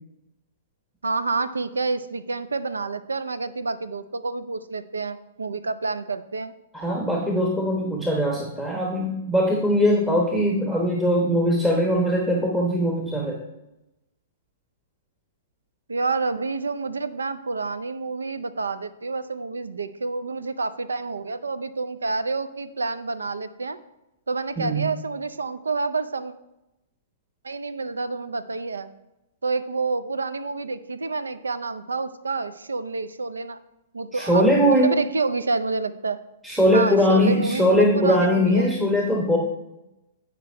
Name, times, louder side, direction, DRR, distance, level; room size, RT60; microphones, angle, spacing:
voice 1, 1.0-6.5 15.9-23.8 24.3-26.3 27.4-28.9 29.4-33.6 33.9-36.2 36.7-38.7, right 3 dB, 85° right, 12 dB, 0.5 m, -28 dB
voice 2, 6.7-13.4 24.6-24.9 34.1-34.9 36.4-39.4, equal, 10° right, 0 dB, 1.2 m, -21 dB
9.5 x 5.2 x 4.4 m, 0.93 s
hypercardioid pair, 115°, 0 cm